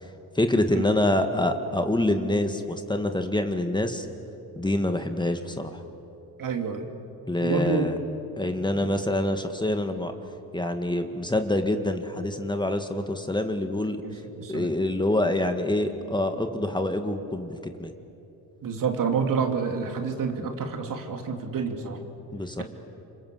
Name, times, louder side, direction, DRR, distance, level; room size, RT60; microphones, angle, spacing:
voice 1, 0.4-4.1 4.6-5.8 7.3-8.0 8.4-10.1 10.5-14.0 14.5-17.9 22.3-22.6, left 1 dB, 10° left, 6 dB, 1.8 m, -26 dB
voice 2, 6.4-6.9 7.4-7.9 14.0-14.7 18.6-22.0, right 5 dB, 55° right, 4 dB, 3.0 m, -28 dB
27.5 x 25.0 x 7.8 m, 2.9 s
supercardioid pair, 80°, 38 cm